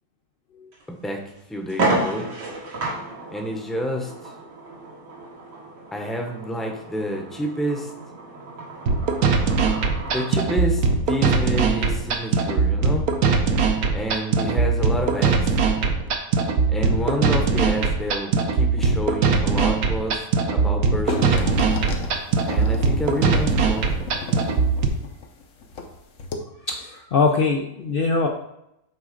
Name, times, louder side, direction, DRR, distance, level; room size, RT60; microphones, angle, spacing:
sound 1, 0.7-0.8 1.3-1.4 1.7-10.3, right 2 dB, 80° right, 2.2 m, -31 dB
voice 1, 0.9-1.2 1.5-2.3 3.3-4.1 5.9-7.9 10.0-13.0 13.9-15.6 16.7-20.2 20.5-21.7 22.5-24.0, equal, ahead, 1 dB, 0.7 m, -29 dB
sound 2, 8.9-24.9, right 4 dB, 65° right, 1.2 m, -21 dB
sound 3, 21.1-25.9 26.2-26.4, left 3 dB, 55° left, 1.1 m, -32 dB
voice 2, 26.7-28.3, left 4 dB, 80° left, 2 dB, 0.5 m, -22 dB
8.1 x 3.7 x 5.1 m, 0.80 s
omnidirectional pair, 1.8 m